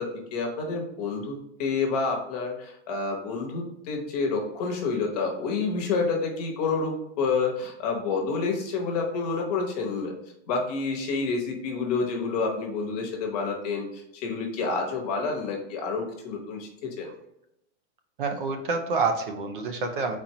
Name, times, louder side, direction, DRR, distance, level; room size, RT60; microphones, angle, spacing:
voice 1, 0.0-10.1 10.5-17.1, left 4 dB, 35° left, 1 dB, 1.0 m, -29 dB
voice 2, 18.2-20.2, right 4 dB, 45° right, 5 dB, 0.5 m, -27 dB
4.3 x 4.1 x 2.8 m, 0.82 s
supercardioid pair, 175°, 36 cm